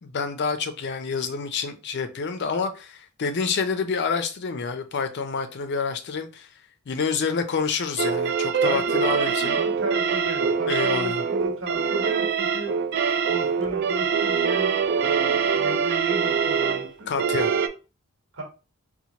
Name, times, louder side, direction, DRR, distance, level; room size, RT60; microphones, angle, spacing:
voice 1, 0.0-6.5 6.9-9.6 10.7-11.2 17.1-17.5, left 5 dB, 50° left, 0.5 m, -28 dB
sound 1, 8.0-17.7, right 6 dB, 50° right, 0.3 m, -24 dB
voice 2, 8.6-12.7 13.3-17.1 18.3-18.4, right 2 dB, 75° right, 1.3 m, -34 dB
4.3 x 2.2 x 2.8 m
head